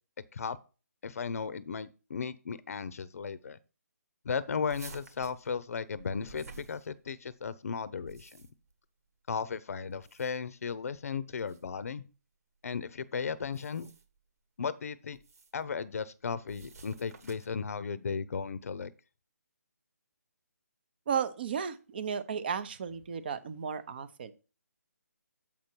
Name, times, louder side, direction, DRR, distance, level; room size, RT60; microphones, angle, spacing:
voice 1, 1.0-3.6 4.2-8.4 9.3-12.0 12.6-13.9 14.6-15.2 15.5-18.9, left 6 dB, 60° left, 0.6 m, -35 dB
sound 1, 4.7-7.3 7.9-8.7 9.9-10.6 11.4-11.6 13.4-14.2 15.1-15.6 16.5-17.6, right 4 dB, 65° right, 1.4 m, -52 dB
voice 2, 21.1-24.3, right 7 dB, 35° right, 0.7 m, -34 dB
7.4 x 5.2 x 4.5 m
hypercardioid pair, 165°, 9 cm